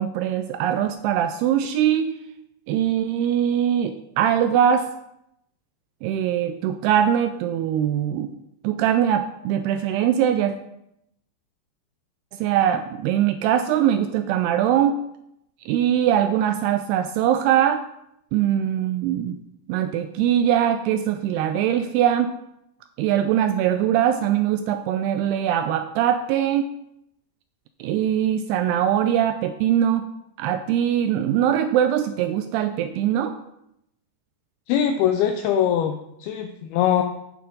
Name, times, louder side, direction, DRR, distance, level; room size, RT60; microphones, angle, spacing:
voice 1, 0.0-2.1 2.7-4.9 6.0-8.3 8.6-10.5 12.4-15.0 15.7-17.8 18.3-19.4 19.7-22.3 23.0-26.7 27.8-30.0 30.4-33.4, right 10 dB, 85° right, 8 dB, 2.4 m, -22 dB
voice 2, 34.7-37.0, left 9 dB, 85° left, 5 dB, 2.2 m, -22 dB
9.4 x 8.5 x 3.9 m, 0.80 s
omnidirectional pair, 5.0 m